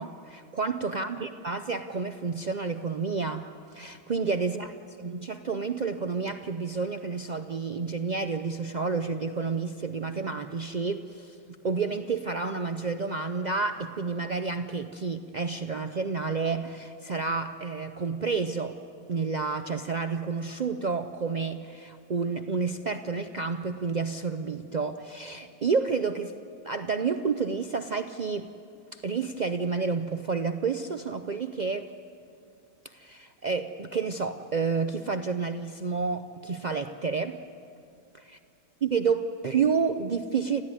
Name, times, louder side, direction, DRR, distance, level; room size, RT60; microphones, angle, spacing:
voice 1, 0.0-3.5 3.7-11.4 11.6-18.8 19.1-26.3 26.6-28.5 28.9-31.9 32.8-37.4 38.3-38.4 38.8-40.6, right 5 dB, 85° right, 8 dB, 0.4 m, -30 dB
29.0 x 15.0 x 9.6 m, 2.5 s
omnidirectional pair, 1.7 m